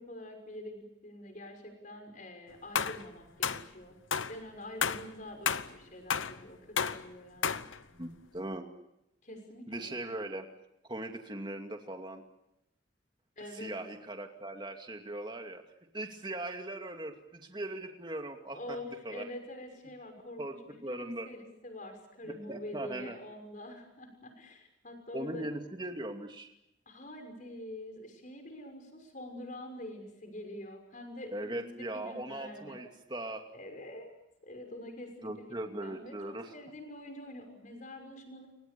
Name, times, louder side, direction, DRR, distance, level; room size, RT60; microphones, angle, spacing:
voice 1, 0.0-4.0 4.3-7.6 9.2-9.9 13.4-13.8 18.5-20.4 20.7-25.5 26.9-32.8 33.5-34.1 34.4-35.5 35.8-38.5, left 1 dB, 40° left, 6 dB, 6.1 m, -46 dB
sound 1, 2.8-3.1 3.4-3.7 4.1-4.4 4.8-5.1 5.5-5.7 6.1-6.4 6.8-7.0 7.4-7.8, left 7 dB, 80° left, 1.0 m, -31 dB
voice 2, 7.9-8.7 9.7-10.5 10.9-12.2 13.6-15.6 15.9-18.8 19.0-19.2 20.4-20.5 20.8-21.3 22.5-23.2 25.1-26.5 31.3-33.4 35.2-36.5, right 1 dB, 25° right, 4 dB, 2.5 m, -39 dB
29.0 x 24.5 x 7.0 m, 0.84 s
head